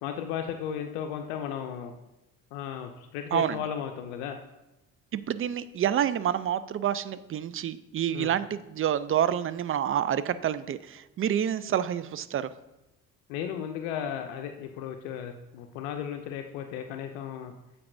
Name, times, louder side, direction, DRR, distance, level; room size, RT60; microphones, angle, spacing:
voice 1, 0.0-1.9 2.5-4.4 8.1-8.3 13.3-17.5, left 8 dB, 80° left, 5 dB, 0.5 m, -35 dB
voice 2, 3.3-3.6 5.1-12.5, right 10 dB, 35° right, 15 dB, 0.4 m, -28 dB
8.5 x 4.7 x 2.6 m, 0.96 s
hypercardioid pair, 50°, 41 cm